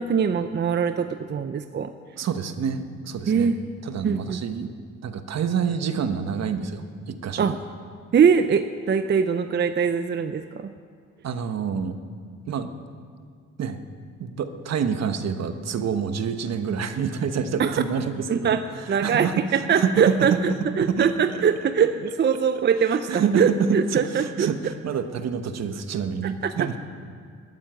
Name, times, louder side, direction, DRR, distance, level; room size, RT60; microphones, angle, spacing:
voice 1, 0.0-1.9 3.3-3.6 4.0-4.4 7.4-7.5 8.1-10.7 17.6-17.8 18.3-18.6 18.9-24.7 26.2-26.5, right 7 dB, 35° right, 9 dB, 0.6 m, -22 dB
voice 2, 2.2-3.5 3.8-4.7 5.0-7.6 11.2-11.9 12.5-12.7 13.6-13.8 14.2-18.6 18.9-19.5 19.7-20.4 20.8-21.1 23.1-26.8, right 6 dB, 60° right, 9 dB, 1.2 m, -27 dB
14.0 x 9.5 x 9.4 m, 2.1 s
cardioid pair, 90°, 30 cm